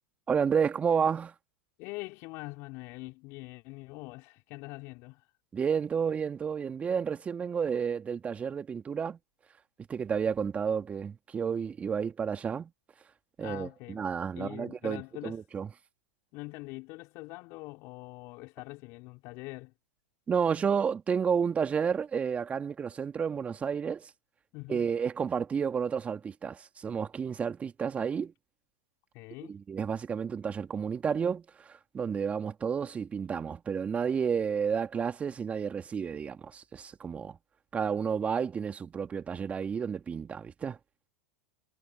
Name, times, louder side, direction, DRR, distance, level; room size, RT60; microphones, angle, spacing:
voice 1, 0.3-1.3 5.5-9.2 9.9-12.7 13.4-15.7 20.3-24.1 24.7-28.3 29.5-37.4 37.7-40.8, right 6 dB, 20° right, 2.6 m, -31 dB
voice 2, 1.8-5.3 13.4-14.0 14.3-15.4 16.3-19.7 24.5-24.9 29.1-29.6, left 24 dB, 50° left, 5.1 m, -43 dB
hypercardioid pair, 100°, 6 cm